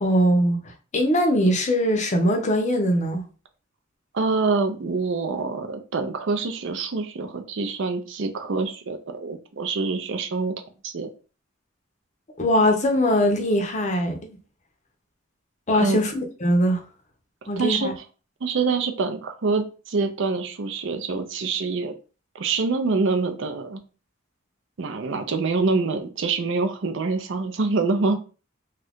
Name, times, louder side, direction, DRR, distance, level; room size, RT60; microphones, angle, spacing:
voice 1, 0.0-3.2 12.4-14.4 15.7-16.8 17.5-17.9, equal, 35° left, 0.6 m, -21 dB
voice 2, 4.1-10.5 10.8-11.1 15.7-16.0 17.6-18.0 18.4-21.9 22.3-23.8 24.8-28.2, right 4 dB, 65° right, 0.5 m, -25 dB
2.7 x 2.4 x 3.4 m
head